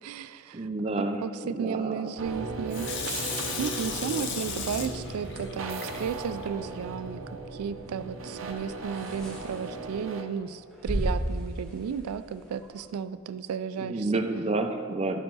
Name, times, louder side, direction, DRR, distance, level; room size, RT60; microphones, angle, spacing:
voice 1, 0.0-2.9 3.3-7.2 7.5-14.2, right 7 dB, 85° right, 14 dB, 0.3 m, -34 dB
voice 2, 0.5-2.1 13.8-15.2, right 2 dB, 30° right, 6 dB, 0.5 m, -30 dB
sound 1, 2.2-10.2, right 3 dB, 60° right, 0.7 m, -37 dB
Water tap faucet / Sink (filling or washing), 2.7-6.5 7.0-7.1, left 6 dB, 55° left, 0.7 m, -36 dB
sound 2, 4.5-12.8, equal, ahead, 1.2 m, -38 dB
12.5 x 4.6 x 3.9 m, 2.3 s
head